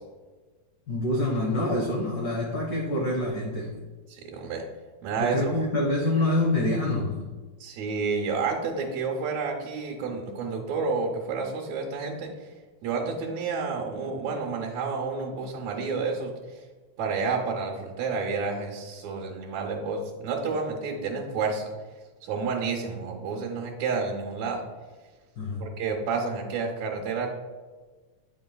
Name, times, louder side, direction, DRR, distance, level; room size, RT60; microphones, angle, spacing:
voice 1, 0.9-3.8 5.2-7.2 25.4-25.7, left 1 dB, 85° left, -2 dB, 1.0 m, -26 dB
voice 2, 4.1-4.6 5.0-5.5 7.6-12.5 12.8-16.6 17.0-21.7 22.2-24.6 25.6-27.3, right 4 dB, 75° right, 0 dB, 2.1 m, -30 dB
8.7 x 5.4 x 2.2 m, 1.4 s
omnidirectional pair, 3.3 m